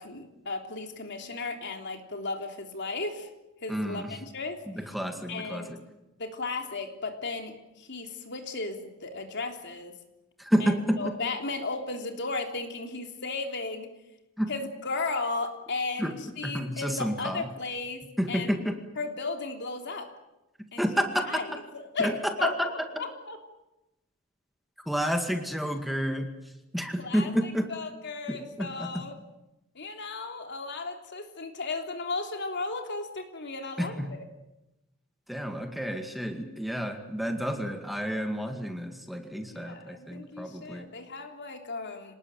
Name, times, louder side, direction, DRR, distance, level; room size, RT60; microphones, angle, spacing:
voice 1, 0.0-3.3 3.6-4.6 5.3-5.7 6.2-10.0 10.6-13.9 14.5-18.6 19.0-20.1 20.7-20.8 21.2-21.5 21.7-22.1 22.4-23.4 27.0-27.3 27.7-29.1 29.7-34.2 39.5-42.1, left 3 dB, 60° left, 4 dB, 3.4 m, -35 dB
voice 2, 3.7-4.2 4.7-5.8 10.4-11.1 14.4-14.5 16.0-16.2 16.4-17.5 18.2-18.8 20.8-21.4 22.0-22.9 24.9-26.3 26.7-27.7 28.3-29.0 33.8-34.1 35.3-40.9, equal, ahead, 5 dB, 2.1 m, -30 dB
26.5 x 19.5 x 9.1 m, 0.95 s
head